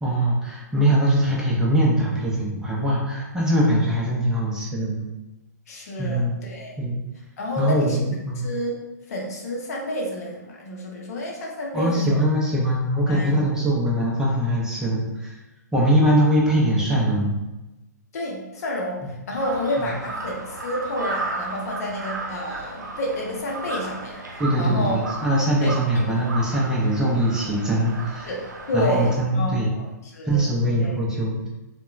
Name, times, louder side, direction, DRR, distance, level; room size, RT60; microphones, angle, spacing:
voice 1, 0.0-5.1 6.0-6.3 6.8-7.0 7.6-8.5 11.7-15.3 15.7-17.4 19.0-19.1 19.8-19.9 24.4-28.3 28.7-29.7 30.3-31.5, right 1 dB, 5° right, -5 dB, 0.5 m, -22 dB
voice 2, 5.7-6.8 7.4-8.0 8.3-8.7 9.1-12.2 13.1-13.4 18.1-25.1 25.6-26.1 28.2-30.5 30.8-31.0, equal, 55° left, -1 dB, 0.7 m, -29 dB
Crow, 19.4-29.1, right 2 dB, 80° right, 0.5 m, -34 dB
2.7 x 2.2 x 2.3 m, 1.0 s
figure-of-eight pair, 120°, 10 cm